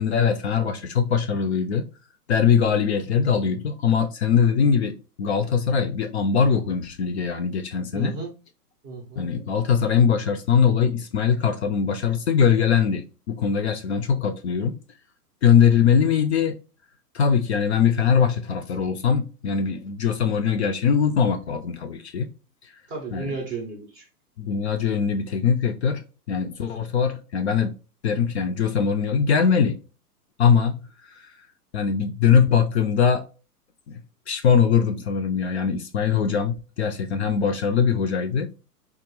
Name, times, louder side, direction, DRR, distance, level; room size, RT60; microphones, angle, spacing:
voice 1, 0.0-1.9 2.3-8.1 9.2-14.8 15.4-16.6 17.1-22.3 23.1-23.3 24.4-26.0 26.3-27.7 28.0-29.8 30.4-30.8 31.1-31.3 31.7-33.2 33.9-34.0 34.3-38.5, left 7 dB, 45° left, 0.4 m, -21 dB
voice 2, 7.9-8.3 8.8-9.3 22.9-24.1, right 3 dB, 20° right, 0.5 m, -33 dB
3.5 x 2.2 x 2.9 m
hypercardioid pair, 140°, 47 cm